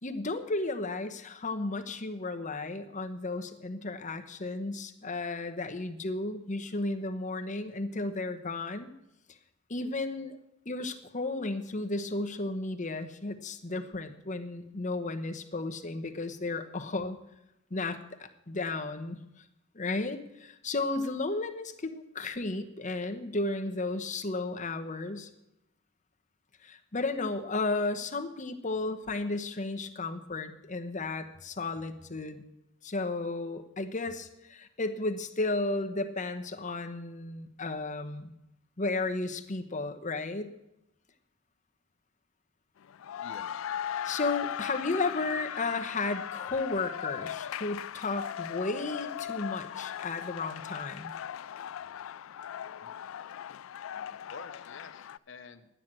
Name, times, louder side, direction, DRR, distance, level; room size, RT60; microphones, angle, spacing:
voice 1, 0.0-8.9 9.7-10.4 10.6-17.2 17.7-19.4 19.7-25.3 26.6-32.4 32.8-38.3 38.8-40.5 44.0-51.1 54.0-54.1, left 3 dB, 40° left, 6 dB, 1.0 m, -34 dB
sound 1, 42.8-55.2, left 9 dB, 85° left, 0.3 m, -38 dB
voice 2, 43.2-43.6 52.8-53.0 54.3-55.7, left 4 dB, 65° left, 9 dB, 0.9 m, -48 dB
11.0 x 9.5 x 7.5 m, 0.86 s
head